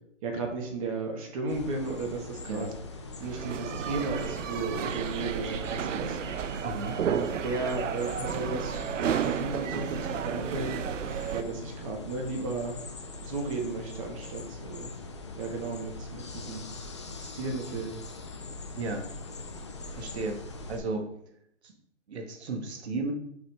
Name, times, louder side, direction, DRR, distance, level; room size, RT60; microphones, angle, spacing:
voice 1, 0.2-2.7 3.2-6.5 7.0-10.8 11.3-12.8 13.2-14.9 15.4-16.7 17.2-17.9, right 3 dB, 30° right, 2 dB, 1.3 m, -34 dB
sound 1, 1.5-20.8, left 3 dB, 25° left, 0.4 m, -42 dB
sound 2, 3.2-11.4, right 8 dB, 80° right, 0.6 m, -32 dB
voice 2, 6.6-7.0 18.7-19.0 19.9-20.4 20.7-21.1 21.6-21.7 22.1-23.1, right 3 dB, 60° right, 4 dB, 1.3 m, -34 dB
6.4 x 5.4 x 3.2 m, 0.74 s
hypercardioid pair, 145°, 37 cm